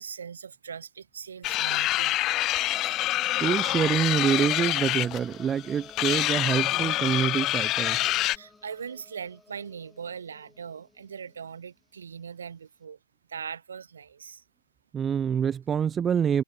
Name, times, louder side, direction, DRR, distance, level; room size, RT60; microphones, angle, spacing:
voice 1, 0.0-2.2 8.3-13.0 13.3-14.4, right 7 dB, 90° right, 2.4 m, -40 dB
sound 1, 1.4-8.4, left 16 dB, 30° left, 0.3 m, -26 dB
sound 2, 1.6-11.7, left 3 dB, 10° left, 5.1 m, -51 dB
voice 2, 3.4-8.0 14.9-16.4, right 8 dB, 15° right, 0.7 m, -26 dB
hypercardioid pair, 140°, 0 cm